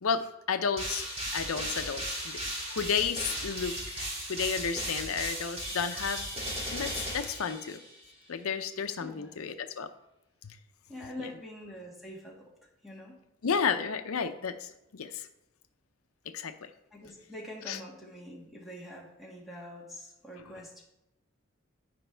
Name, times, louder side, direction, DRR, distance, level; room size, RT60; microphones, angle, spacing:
voice 1, 0.0-2.4 2.7-6.2 6.7-7.8 8.3-9.9 11.2-11.3 13.4-15.2 16.3-16.5 17.7-17.8, left 6 dB, 85° left, 8 dB, 0.6 m, -32 dB
sound 1, 0.8-8.0, right 1 dB, 30° right, 2.7 m, -36 dB
voice 2, 9.0-9.4 10.9-12.4 12.8-13.1 16.9-20.8, left 1 dB, ahead, -4 dB, 2.0 m, -45 dB
13.5 x 5.1 x 3.4 m, 0.89 s
head